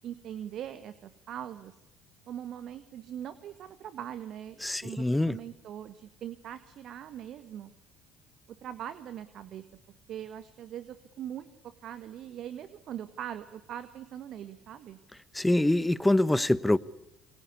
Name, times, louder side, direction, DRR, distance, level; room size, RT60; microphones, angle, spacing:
voice 1, 0.0-1.8 2.3-7.7 8.5-9.6 10.1-15.0, right 10 dB, 55° right, 1.5 m, -41 dB
voice 2, 4.6-5.4 15.3-16.8, left 1 dB, 10° left, 1.2 m, -24 dB
28.0 x 25.0 x 8.3 m
figure-of-eight pair, 55°, 0 cm